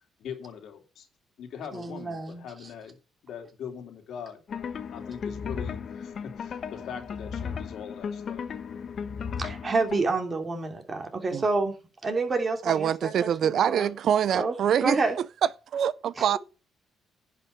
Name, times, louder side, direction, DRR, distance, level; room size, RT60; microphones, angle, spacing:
voice 1, 0.2-1.1 1.4-3.0 3.2-4.4 4.9-8.4, left 7 dB, 75° left, 2.8 m, -41 dB
voice 2, 1.7-2.4 9.4-11.8 12.0-13.9 14.3-14.5 14.8-15.2 16.2-16.3, right 3 dB, 35° right, 3.0 m, -28 dB
sound 1, 4.5-10.0, left 6 dB, 55° left, 1.1 m, -35 dB
voice 3, 12.6-15.0 15.4-16.4, right 9 dB, 65° right, 0.5 m, -25 dB
10.5 x 5.8 x 6.8 m
cardioid pair, 90°, 0 cm